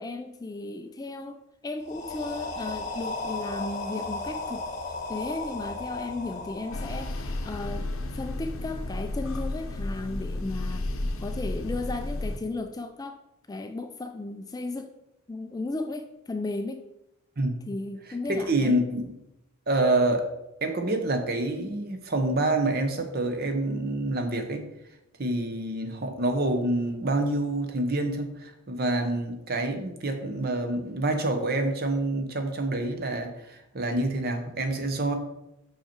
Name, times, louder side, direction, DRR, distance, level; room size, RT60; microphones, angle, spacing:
voice 1, 0.0-4.7 5.1-10.9 11.2-13.2 13.5-14.9 15.3-16.8 17.7-18.8, left 2 dB, 15° left, 7 dB, 0.3 m, -35 dB
sound 1, 1.8-7.7, left 3 dB, 35° left, 1.0 m, -35 dB
sound 2, 6.7-12.4, left 2 dB, 65° left, 0.7 m, -32 dB
voice 2, 18.5-19.1 19.7-20.3 20.6-24.7 25.2-35.1, right 2 dB, 45° right, 6 dB, 0.9 m, -27 dB
5.8 x 5.6 x 4.4 m, 0.87 s
head